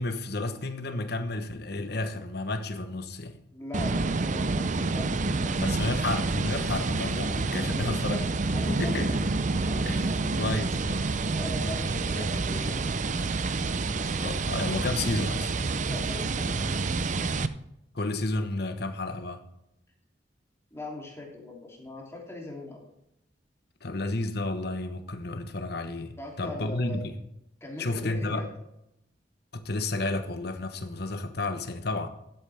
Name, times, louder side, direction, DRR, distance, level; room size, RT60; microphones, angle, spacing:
voice 1, 0.0-3.4 5.6-8.3 8.7-9.2 9.8-11.1 14.2-15.5 17.9-19.4 23.8-27.1 27.8-28.5 29.5-32.1, left 2 dB, 60° left, 1.1 m, -31 dB
voice 2, 3.5-5.6 7.7-8.2 8.5-9.1 9.6-10.5 11.3-12.9 15.9-16.6 20.7-22.8 26.2-27.0 27.6-28.5, left 2 dB, 15° left, 3.0 m, -41 dB
sound 1, 3.7-17.5, right 3 dB, 40° right, 0.6 m, -28 dB
13.5 x 9.0 x 3.4 m
head